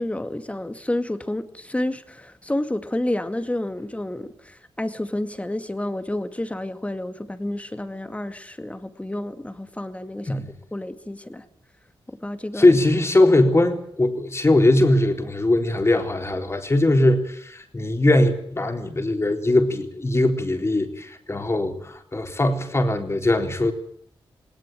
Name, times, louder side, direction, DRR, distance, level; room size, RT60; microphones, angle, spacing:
voice 1, 0.0-11.5 12.1-12.8 13.2-13.3, left 1 dB, 15° left, 10 dB, 2.2 m, -30 dB
voice 2, 12.6-23.7, left 1 dB, 30° left, 5 dB, 3.9 m, -20 dB
19.5 x 19.0 x 9.1 m, 0.65 s
cardioid pair, 70°, 9 cm